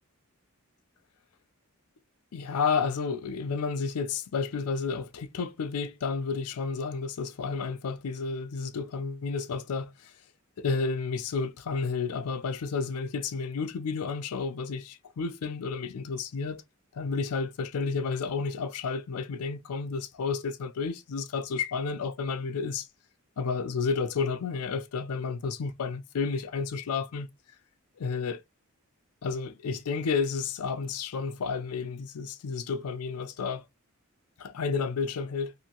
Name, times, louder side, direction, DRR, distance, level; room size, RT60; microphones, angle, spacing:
voice 1, 2.3-10.1 10.6-16.6 16.9-22.9 23.4-27.3 28.0-28.4 29.2-33.6 34.4-35.5, left 5 dB, 90° left, 0.5 m, -31 dB
2.7 x 2.6 x 2.8 m
head